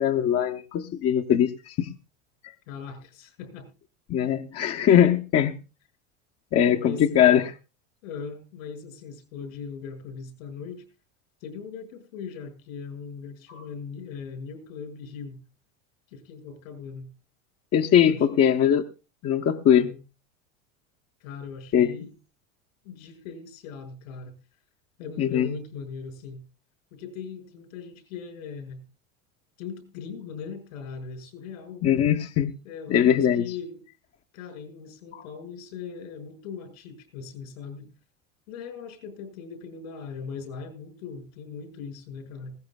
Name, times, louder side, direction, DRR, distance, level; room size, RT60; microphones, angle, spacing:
voice 1, 0.0-1.9 4.1-5.5 6.5-7.5 17.7-18.8 19.2-19.9 21.7-21.9 25.2-25.5 31.8-32.5 32.9-33.4 35.1-35.2, left 9 dB, 40° left, 4 dB, 0.9 m, -21 dB
voice 2, 2.7-3.7 4.5-4.6 6.7-7.5 8.0-10.8 11.4-15.4 16.1-17.1 18.0-18.5 19.8-20.0 21.2-22.1 22.8-24.4 25.0-26.4 26.9-28.8 29.6-31.9 32.6-33.8 34.3-37.9 38.5-42.6, left 6 dB, 80° left, 7 dB, 5.6 m, -39 dB
20.0 x 16.5 x 2.3 m, 0.30 s
hypercardioid pair, 95°, 39 cm